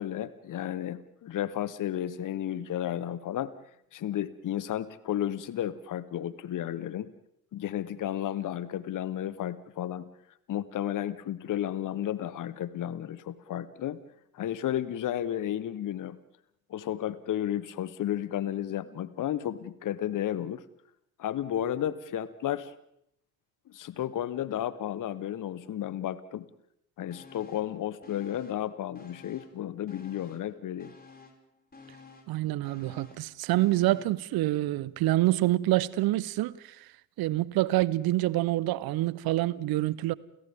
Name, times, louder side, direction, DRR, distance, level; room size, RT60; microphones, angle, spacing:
voice 1, 0.0-3.5 3.9-7.1 7.5-10.1 10.5-14.0 14.3-16.2 16.7-20.6 21.2-22.7 23.7-26.5 27.0-30.9, left 11 dB, 50° left, 1.2 m, -33 dB
sound 1, 27.1-27.8 28.0-29.6 29.9-34.2 34.6-34.7, left 4 dB, 20° left, 5.8 m, -52 dB
voice 2, 32.3-36.9 37.2-40.1, right 16 dB, 60° right, 0.9 m, -27 dB
30.0 x 28.5 x 3.7 m
figure-of-eight pair, 45°, 42 cm